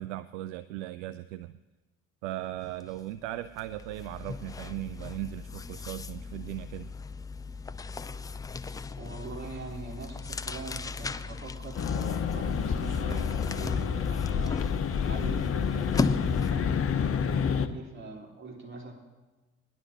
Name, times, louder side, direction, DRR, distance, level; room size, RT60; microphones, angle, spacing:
voice 1, 0.0-1.6 2.2-6.9, right 15 dB, 65° right, 14 dB, 0.5 m, -38 dB
sound 1, 2.8-3.0 3.3-16.7, left 4 dB, 10° left, 0.3 m, -36 dB
voice 2, 8.9-14.6 15.0-16.7 17.5-18.9, right 3 dB, 30° right, -2 dB, 4.3 m, -42 dB
sound 2, 11.7-17.7, left 7 dB, 35° left, 0.9 m, -28 dB
21.0 x 11.0 x 3.1 m, 1.2 s
figure-of-eight pair, 55°, 40 cm